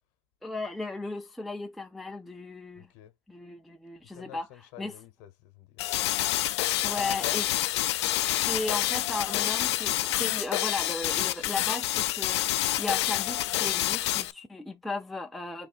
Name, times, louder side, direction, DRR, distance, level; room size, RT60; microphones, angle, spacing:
voice 1, 0.4-2.9 3.3-4.5 4.8-4.9 6.8-7.5 8.2-15.7, left 2 dB, ahead, 0.3 m, -36 dB
voice 2, 2.8-3.1 4.1-6.1 6.9-7.4, left 13 dB, 55° left, 0.9 m, -46 dB
sound 1, 5.8-14.3, left 15 dB, 80° left, 0.4 m, -28 dB
3.3 x 2.5 x 4.2 m
supercardioid pair, 135°, 14 cm